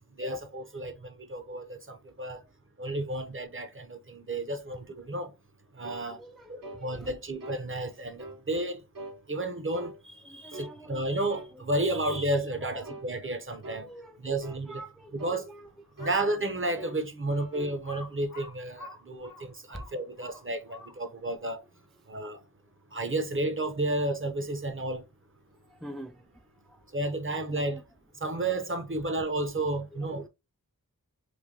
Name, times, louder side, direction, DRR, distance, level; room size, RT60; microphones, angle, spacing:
voice 1, 0.2-2.4 2.8-5.3 5.8-6.2 6.5-8.8 9.3-13.9 14.2-14.8 15.1-15.5 16.0-21.6 22.1-22.4 22.9-25.0 26.9-27.8 28.2-30.2, right 2 dB, 35° right, 0.7 m, -32 dB
sound 1, 5.8-6.1 6.6-6.9 7.4-7.6 8.2-8.4 8.9-9.2 9.7-10.0 10.5-10.8 11.3-11.5 12.1-12.3 12.8-13.1 13.6-13.9 14.4-14.7 15.2-15.4 16.0-16.2 16.8-17.0 17.3-17.8, right 2 dB, 60° right, 0.8 m, -42 dB
voice 2, 6.1-7.2 10.2-11.0 11.8-12.0 12.6-13.0 13.7-15.2 15.5-15.7 16.0-16.1 25.8-26.2 27.7-27.8 29.9-30.3, right 1 dB, ahead, 0.3 m, -47 dB
Crow, 15.9-16.4 17.0-17.1 17.8-21.2, left 2 dB, 75° left, 0.9 m, -47 dB
3.3 x 2.2 x 3.6 m
wide cardioid pair, 45°, 36 cm